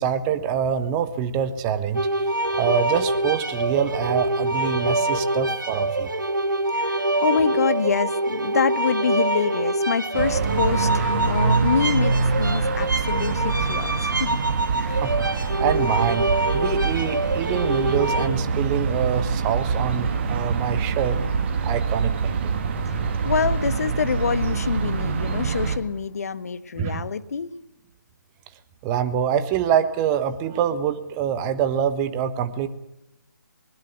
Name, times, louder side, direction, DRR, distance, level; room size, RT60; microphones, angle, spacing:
voice 1, 0.0-2.1 2.5-6.1 14.9-21.2 21.6-22.6 26.8-27.0 28.8-32.7, right 8 dB, 20° right, 11 dB, 1.3 m, -25 dB
sound 1, 1.9-18.3, right 2 dB, 75° right, 3.5 m, -25 dB
voice 2, 6.7-14.4 14.8-15.0 23.2-27.5, left 6 dB, 50° left, 14 dB, 1.3 m, -26 dB
sound 2, 10.1-25.8, right 5 dB, 35° right, 2.3 m, -25 dB
21.0 x 20.0 x 8.1 m, 0.89 s
figure-of-eight pair, 140°, 11 cm